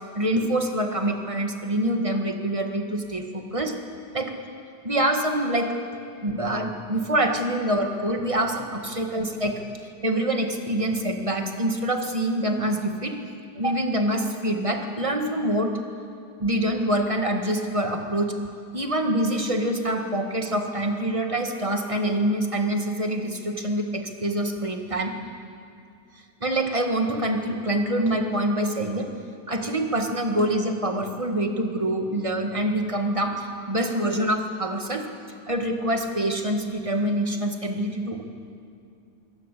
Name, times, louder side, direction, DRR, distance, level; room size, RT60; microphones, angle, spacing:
voice 1, 0.1-3.7 4.1-4.3 4.8-5.7 6.2-9.6 10.0-13.2 13.6-15.7 16.4-18.4 18.7-25.1 26.4-29.1 29.5-35.1 35.5-38.2, right 1 dB, 20° right, 4 dB, 1.7 m, -25 dB
23.5 x 17.5 x 8.4 m, 2.4 s
omnidirectional pair, 1.9 m